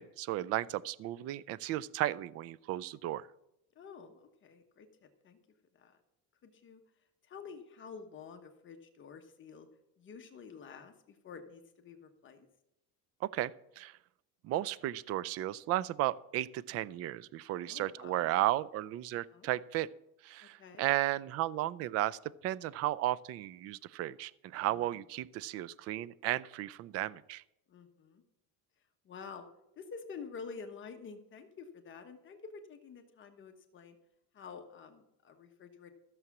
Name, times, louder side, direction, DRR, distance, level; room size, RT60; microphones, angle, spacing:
voice 1, 0.0-3.3 13.2-13.5 13.8-13.9 14.4-19.9 20.2-27.4, right 14 dB, 40° right, 21 dB, 0.4 m, -34 dB
voice 2, 3.7-5.4 5.8-6.0 6.4-6.8 7.3-9.7 10.0-12.5 17.7-18.3 19.3-19.5 20.4-20.9 24.7-24.9 27.7-28.2 29.0-29.5 29.8-34.0 34.3-35.9, left 5 dB, 30° left, 5 dB, 1.2 m, -49 dB
14.0 x 7.1 x 6.0 m, 0.84 s
cardioid pair, 150°, 37 cm